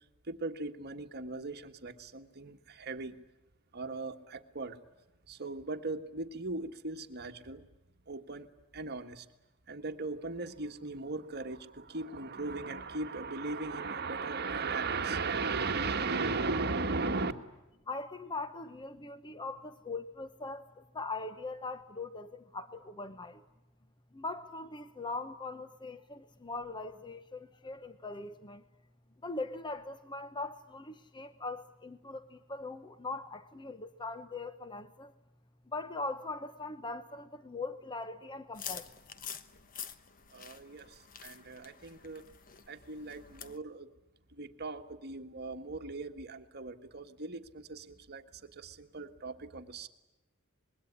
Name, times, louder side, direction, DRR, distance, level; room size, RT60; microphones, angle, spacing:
voice 1, 0.3-3.2 3.7-4.8 5.3-7.6 8.1-8.5 8.7-9.3 9.7-17.3 40.3-42.2 42.7-43.9 44.3-49.9, right 3 dB, 50° right, 1.6 m, -37 dB
voice 2, 17.9-23.4 24.1-28.6 29.2-35.1 35.7-38.9, left 3 dB, 20° left, 0.9 m, -41 dB
sound 1, 38.5-43.6, left 8 dB, 40° left, 1.2 m, -47 dB
26.0 x 22.0 x 9.8 m
head